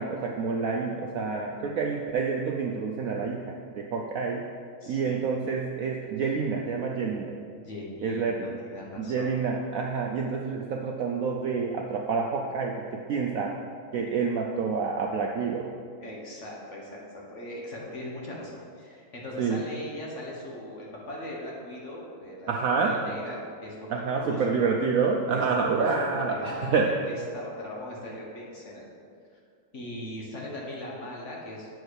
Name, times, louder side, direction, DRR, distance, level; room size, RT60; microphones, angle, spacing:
voice 1, 0.0-4.5 4.9-7.3 8.0-8.5 9.0-13.5 13.9-15.7 19.4-19.6 22.5-22.9 23.9-26.9, right 5 dB, 90° right, 0 dB, 0.7 m, -28 dB
voice 2, 4.8-5.2 7.6-9.4 16.0-24.8 25.3-28.9 29.7-31.7, left 1 dB, 40° left, -3 dB, 1.4 m, -39 dB
7.2 x 4.8 x 6.4 m, 2.2 s
omnidirectional pair, 2.1 m